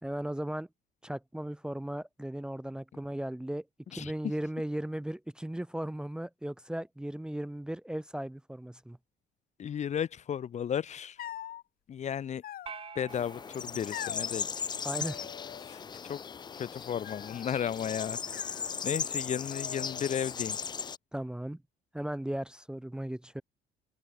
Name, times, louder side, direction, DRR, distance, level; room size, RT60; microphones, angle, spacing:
voice 1, 0.0-0.7 1.0-9.0 14.8-15.3 21.1-21.6 21.9-23.4, right 1 dB, 5° right, 0.9 m, -37 dB
voice 2, 9.6-11.2 11.9-12.4 12.9-14.5 15.7-15.8 16.1-16.2 16.6-18.4 18.8-20.6, left 8 dB, 45° left, 1.1 m, -34 dB
sound 1, 11.2-11.6 12.4-13.1 13.9-14.3 14.9-15.8 16.0-16.6 17.0-17.6 18.3-19.2 19.5-20.2, left 12 dB, 60° left, 1.9 m, -44 dB
sound 2, 12.7-15.1, right 6 dB, 35° right, 1.1 m, -49 dB
sound 3, 13.1-21.0, left 6 dB, 25° left, 0.4 m, -37 dB
cardioid pair, 110°, 17 cm